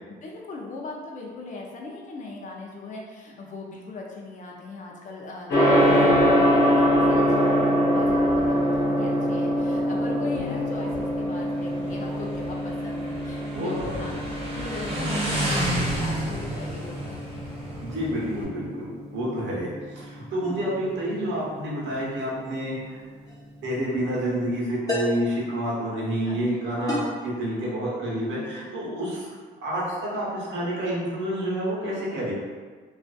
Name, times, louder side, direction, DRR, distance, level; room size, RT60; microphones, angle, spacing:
voice 1, 0.1-17.2 20.4-20.7 26.3-26.6, left 3 dB, 40° left, -1 dB, 0.5 m, -38 dB
Gong, 5.5-24.5, equal, 75° left, 1.2 m, -25 dB
Motorcycle, 5.5-18.4, right 1 dB, 30° right, 0.8 m, -33 dB
voice 2, 5.8-6.3 13.5-14.0 17.8-23.0 23.6-29.3 29.6-32.3, right 1 dB, 70° right, -5 dB, 1.0 m, -29 dB
sound 1, 23.3-23.5 24.9-25.3 26.9-27.3, left 2 dB, 15° left, 1.0 m, -28 dB
2.5 x 2.4 x 2.3 m, 1.5 s
cardioid pair, 90°, 20 cm